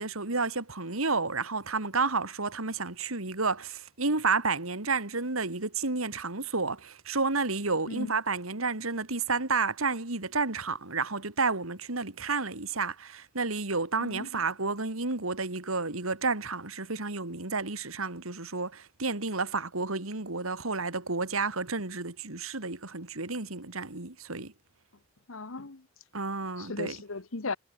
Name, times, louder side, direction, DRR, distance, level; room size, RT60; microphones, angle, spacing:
voice 1, 0.0-24.5 26.1-27.0, right 4 dB, 80° right, 2.9 m, -31 dB
voice 2, 14.0-14.4 25.3-25.9 26.6-27.6, left 3 dB, 70° left, 1.3 m, -37 dB
head